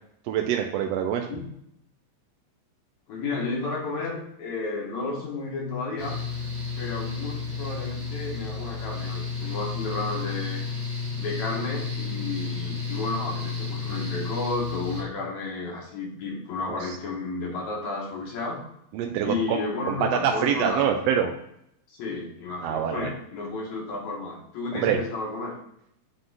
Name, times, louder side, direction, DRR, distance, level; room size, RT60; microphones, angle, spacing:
voice 1, 0.3-1.3 16.8-17.0 18.9-19.6 19.9-21.3 22.6-23.1 24.7-25.0, right 9 dB, 80° right, 3 dB, 1.5 m, -25 dB
voice 2, 3.1-6.2 6.8-10.6 11.2-18.6 19.2-21.3 22.0-25.6, left 3 dB, 75° left, -2 dB, 2.9 m, -32 dB
Mechanical fan, 6.0-15.0, left 5 dB, 25° right, 1.1 m, -32 dB
7.7 x 3.8 x 3.8 m, 0.74 s
omnidirectional pair, 3.3 m